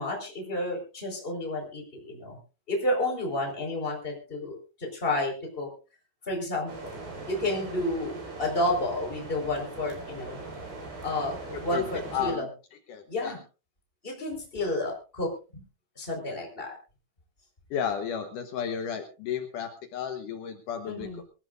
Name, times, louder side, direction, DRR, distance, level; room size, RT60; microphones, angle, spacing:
voice 1, 0.0-2.4 2.7-5.7 6.3-6.9 7.3-10.4 11.0-11.3 11.6-12.5 13.1-13.4 14.0-15.6 16.0-16.8 20.8-21.2, left 1 dB, 10° left, 1 dB, 4.2 m, -31 dB
sound 1, 6.7-12.3, right 3 dB, 55° right, 6.7 m, -40 dB
voice 2, 11.5-11.8 12.1-12.5 12.9-13.4 17.7-21.1, left 8 dB, 80° left, 6 dB, 1.8 m, -33 dB
23.5 x 15.0 x 2.5 m, 0.34 s
omnidirectional pair, 5.5 m